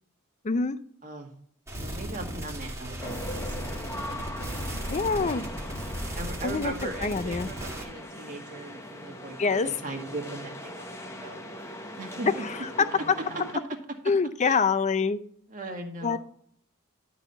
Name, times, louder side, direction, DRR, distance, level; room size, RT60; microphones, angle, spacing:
voice 1, 0.4-0.8 4.9-5.5 6.4-6.7 7.0-7.5 9.4-9.7 12.4-13.1 14.1-15.2 16.0-16.2, left 5 dB, 35° left, 13 dB, 0.5 m, -25 dB
sound 1, 1.7-7.8, equal, 15° right, 1.8 m, -36 dB
voice 2, 1.8-4.3 4.7-5.4 6.1-11.4 12.0-12.4 14.4-14.6 15.5-16.2, right 2 dB, 40° right, 2 dB, 1.7 m, -39 dB
sound 2, 3.0-13.5, left 1 dB, 15° left, 0.9 m, -40 dB
11.5 x 4.2 x 6.7 m, 0.62 s
head